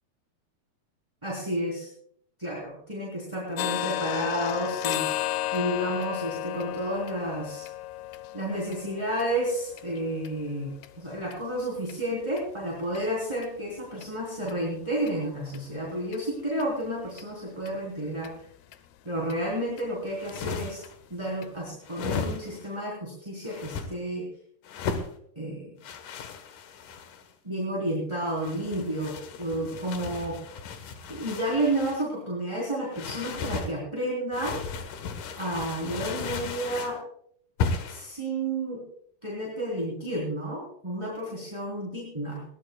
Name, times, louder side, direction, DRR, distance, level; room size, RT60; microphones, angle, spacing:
voice 1, 1.2-1.9 2.4-5.1 5.5-7.7 8.3-18.3 19.0-20.8 21.1-24.3 25.3-25.7 27.4-30.3 31.1-34.6 35.4-37.0 37.9-38.8 39.2-42.4, right 1 dB, 10° right, -4 dB, 3.2 m, -31 dB
sound 1, 3.6-11.4 11.8-12.0 12.4-12.5 13.0-13.1 13.4-13.5 14.0-14.1 14.5-14.6 15.1-15.2 15.5-15.6 16.1-16.2 16.6-16.7 17.2-17.3 17.7-17.8 18.2-18.3 18.7-18.8 19.3-19.4 19.8-19.9 20.3-20.4 20.8-20.9 21.4-21.5, left 14 dB, 80° left, 2.8 m, -33 dB
sound 2, 20.1-21.0 21.8-22.7 23.5-23.9 24.6-25.1 25.8-27.3 28.3-32.1 32.9-33.7 34.3-37.0 37.6-38.1, left 5 dB, 65° left, 2.5 m, -35 dB
21.0 x 18.5 x 2.3 m, 0.66 s
omnidirectional pair, 4.6 m